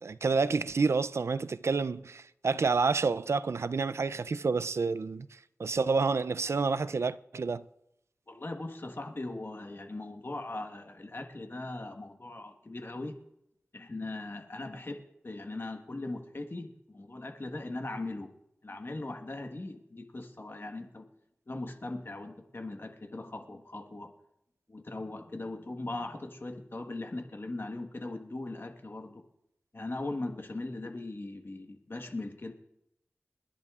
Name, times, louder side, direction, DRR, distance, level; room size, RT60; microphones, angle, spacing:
voice 1, 0.0-7.7, right 4 dB, 80° right, 0.4 m, -29 dB
voice 2, 8.3-13.2 13.7-18.3 18.6-21.0 21.5-24.1 24.7-29.2 29.7-32.5, left 2 dB, 55° left, 1.4 m, -39 dB
29.0 x 11.0 x 2.4 m
wide cardioid pair, 60°, 5 cm